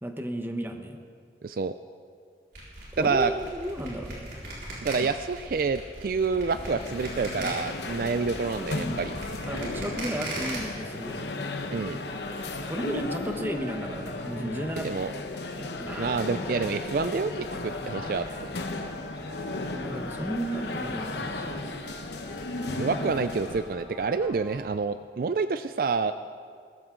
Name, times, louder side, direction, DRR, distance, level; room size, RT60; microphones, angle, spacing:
voice 1, 0.0-1.0 2.9-4.3 8.8-8.9 9.4-11.3 12.7-14.9 15.5-16.7 19.7-21.8, right 1 dB, 10° right, 4 dB, 1.0 m, -34 dB
voice 2, 1.4-1.7 3.0-3.3 4.8-9.1 11.7-12.0 14.8-15.1 16.0-18.5 22.8-26.1, right 4 dB, 55° right, 11 dB, 0.4 m, -28 dB
sound 1, 2.5-10.6, right 1 dB, 75° right, 4.7 m, -38 dB
sound 2, 6.4-23.8, left 2 dB, 75° left, 1.0 m, -35 dB
sound 3, 11.7-24.6, equal, 35° right, 4.8 m, -46 dB
19.5 x 14.0 x 3.8 m, 2.2 s
head